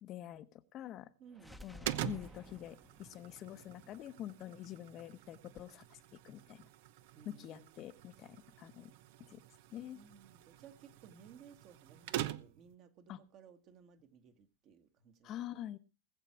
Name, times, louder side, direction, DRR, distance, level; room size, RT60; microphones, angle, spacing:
voice 1, 0.0-1.1 1.6-6.6 7.2-8.9 9.2-9.4 9.7-10.0 13.1-13.2 15.2-15.8, left 12 dB, 35° left, 1.0 m, -46 dB
voice 2, 1.2-1.6 7.1-7.9 8.6-8.9 9.9-15.7, right 7 dB, 40° right, 1.8 m, -59 dB
sound 1, 1.3-5.2, left 1 dB, 5° right, 1.1 m, -55 dB
sound 2, 1.8-12.7, right 13 dB, 60° right, 0.9 m, -46 dB
20.0 x 7.4 x 4.6 m
supercardioid pair, 135°, 0 cm